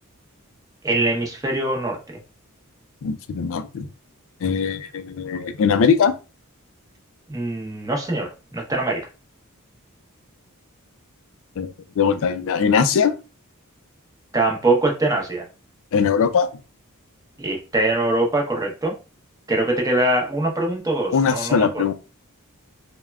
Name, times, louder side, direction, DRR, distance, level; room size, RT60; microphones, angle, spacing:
voice 1, 0.8-2.0 7.3-9.1 14.3-15.4 17.4-18.9 19.5-21.8, right 2 dB, 15° right, 0 dB, 0.7 m, -23 dB
voice 2, 3.0-3.9 4.4-6.1 11.6-13.1 15.9-16.5 21.1-21.9, left 6 dB, 65° left, 11 dB, 0.4 m, -20 dB
3.4 x 2.1 x 2.2 m, 0.31 s
head